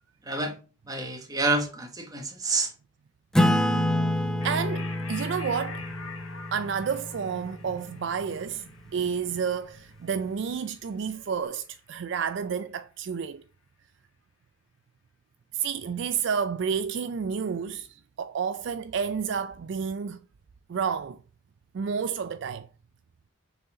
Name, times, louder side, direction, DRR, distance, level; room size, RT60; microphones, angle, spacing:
voice 1, 0.2-0.6 0.9-2.7, right 2 dB, 20° right, 1.2 m, -28 dB
Acoustic guitar / Strum, 3.3-8.3, left 1 dB, 5° left, 0.6 m, -28 dB
sound 1, 4.4-11.3, left 5 dB, 85° left, 1.2 m, -45 dB
voice 2, 4.4-5.9 6.5-13.4 15.5-20.2 20.7-21.2 21.7-22.7, right 6 dB, 60° right, 0.3 m, -30 dB
6.7 x 4.1 x 3.7 m
head